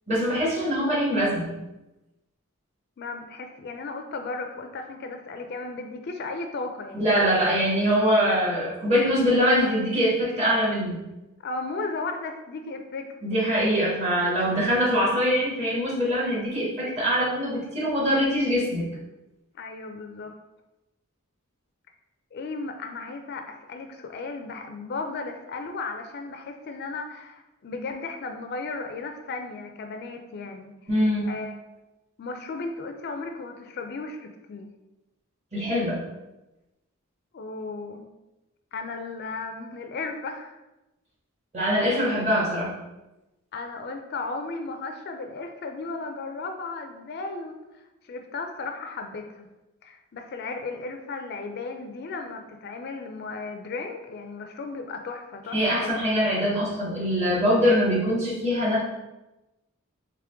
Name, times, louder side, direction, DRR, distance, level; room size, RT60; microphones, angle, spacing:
voice 1, 0.1-1.5 6.9-11.0 13.2-18.9 30.9-31.3 35.5-36.0 41.5-42.7 55.5-58.8, equal, 30° right, -6 dB, 1.4 m, -23 dB
voice 2, 3.0-7.2 11.4-13.2 19.6-20.3 22.3-30.7 31.3-31.6 32.2-34.7 37.3-38.1 38.7-40.6 41.8-42.0 43.5-49.5 49.8-56.0, left 3 dB, 50° left, 5 dB, 0.4 m, -35 dB
3.7 x 3.3 x 3.4 m, 1.0 s
head